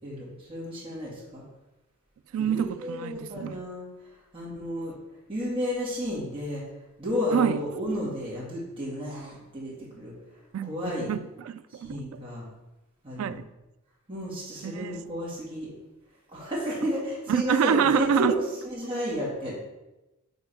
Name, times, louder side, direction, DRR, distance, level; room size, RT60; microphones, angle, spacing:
voice 1, 0.0-1.4 2.4-3.9 4.3-4.9 5.3-6.6 7.0-10.1 10.6-11.1 11.7-12.4 13.0-13.4 14.1-15.7 16.3-18.4 18.7-19.6, equal, 25° right, 2.5 m, -32 dB
voice 2, 2.3-3.6 7.3-7.6 10.5-12.0 13.2-13.5 14.6-15.0 17.3-18.4, right 8 dB, 70° right, 0.3 m, -27 dB
5.4 x 4.4 x 5.7 m
head